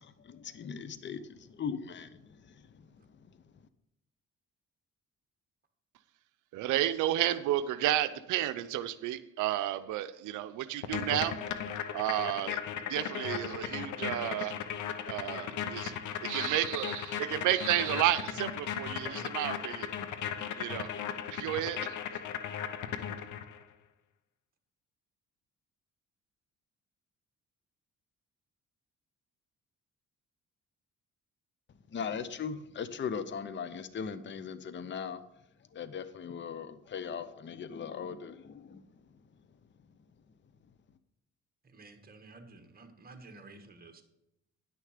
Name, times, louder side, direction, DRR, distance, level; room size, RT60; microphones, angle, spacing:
voice 1, 0.0-3.3 31.9-35.2 35.7-38.8, left 6 dB, 40° left, 0.7 m, -39 dB
voice 2, 6.5-11.4 11.9-12.6 12.9-14.6 15.1-16.0 16.2-19.9 20.6-20.9 21.3-22.0, right 13 dB, 90° right, 0.5 m, -31 dB
sound 1, 10.8-23.6, left 8 dB, 80° left, 0.8 m, -37 dB
voice 3, 18.0-18.4 19.0-19.3 41.6-44.0, right 2 dB, 30° right, 1.5 m, -52 dB
10.0 x 6.5 x 5.0 m
cardioid pair, 90°, 30 cm